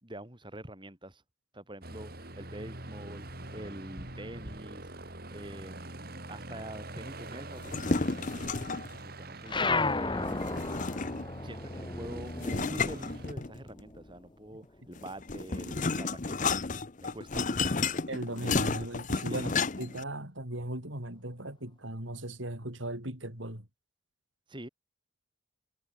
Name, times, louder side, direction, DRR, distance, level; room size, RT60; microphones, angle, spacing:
voice 1, 0.0-1.2 1.5-8.6 9.0-10.6 11.4-16.6 17.0-17.7 19.3-19.5 24.5-24.7, right 1 dB, 25° right, 5.9 m, -45 dB
Aircraft, 1.8-13.3, right 2 dB, 50° right, 5.2 m, -44 dB
sound 1, 7.6-9.0 10.4-11.4 12.4-13.8 15.0-20.0, left 4 dB, 40° left, 0.9 m, -32 dB
sound 2, 9.5-14.3 14.7-16.1, left 3 dB, 25° left, 1.5 m, -34 dB
voice 2, 18.1-23.7, right 1 dB, 80° right, 6.4 m, -38 dB
head